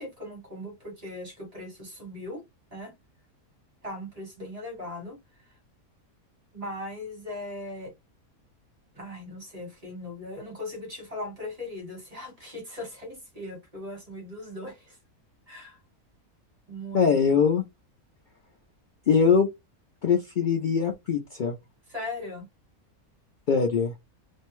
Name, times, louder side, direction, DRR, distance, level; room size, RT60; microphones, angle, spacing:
voice 1, 0.0-2.4 2.7-2.9 3.8-5.5 6.5-8.0 8.9-15.0 15.5-15.8 16.7-17.4 21.9-22.5, left 1 dB, 25° right, 1.3 m, -39 dB
voice 2, 16.9-17.6 19.1-19.5 20.0-21.5 23.5-23.9, left 6 dB, 85° left, 0.4 m, -22 dB
2.6 x 2.1 x 3.0 m
omnidirectional pair, 1.5 m